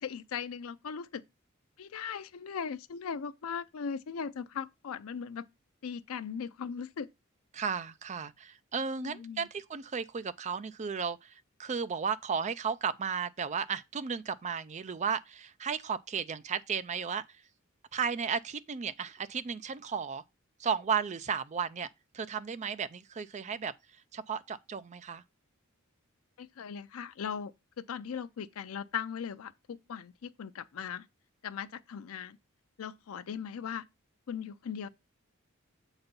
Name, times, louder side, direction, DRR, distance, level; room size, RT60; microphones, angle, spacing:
voice 1, 0.0-1.2 1.8-5.5 5.8-7.1 9.0-9.5 26.4-27.5 27.8-31.1 31.4-32.4 32.8-33.8 34.3-34.9, left 7 dB, 75° left, 0.5 m, -38 dB
voice 2, 7.5-11.3 11.6-17.2 17.9-20.2 20.6-21.9 22.1-23.7 24.1-25.2, right 6 dB, 35° right, 0.4 m, -34 dB
6.9 x 4.1 x 5.2 m
head